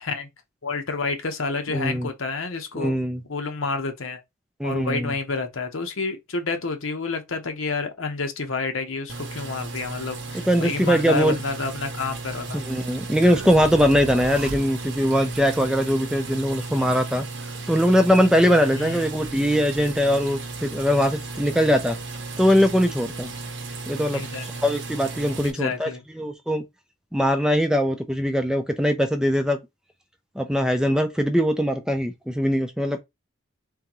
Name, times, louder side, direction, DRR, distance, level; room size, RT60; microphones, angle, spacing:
voice 1, 0.6-2.9 3.3-4.2 4.6-12.6 18.7-19.0 24.1-24.5 25.4-26.0, left 3 dB, 75° left, 0.9 m, -29 dB
voice 2, 1.7-2.1 2.8-3.2 4.6-5.1 10.5-11.4 12.5-17.3 17.7-22.0 22.4-23.3 23.9-24.2 24.6-25.9 26.2-26.6 27.1-29.6 30.4-33.0, equal, 5° right, 0.4 m, -21 dB
sound 1, 9.1-25.5, right 3 dB, 60° right, 0.8 m, -35 dB
sound 2, 13.2-15.1, right 4 dB, 90° right, 0.6 m, -35 dB
3.8 x 3.4 x 3.0 m
head